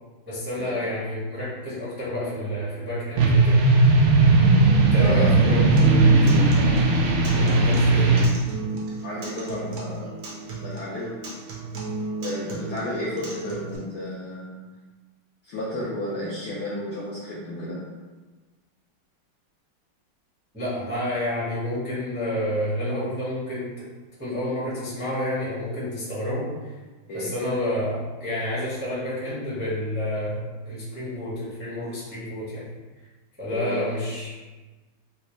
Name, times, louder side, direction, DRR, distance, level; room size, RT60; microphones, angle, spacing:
voice 1, 0.3-3.6 4.8-6.8 7.3-8.2 20.5-23.8 24.2-26.8 27.1-32.7 33.4-34.3, left 1 dB, 10° right, -10 dB, 0.6 m, -29 dB
sound 1, 3.2-8.2, right 3 dB, 80° right, 1.4 m, -17 dB
voice 2, 4.9-5.4 9.0-10.1 10.6-11.2 12.2-14.7 15.4-17.8 27.1-27.3 33.5-33.8, equal, 75° left, -6 dB, 0.9 m, -32 dB
Acoustic guitar, 5.8-13.8, right 4 dB, 60° right, 1.0 m, -34 dB
4.2 x 2.4 x 3.1 m, 1.3 s
omnidirectional pair, 2.3 m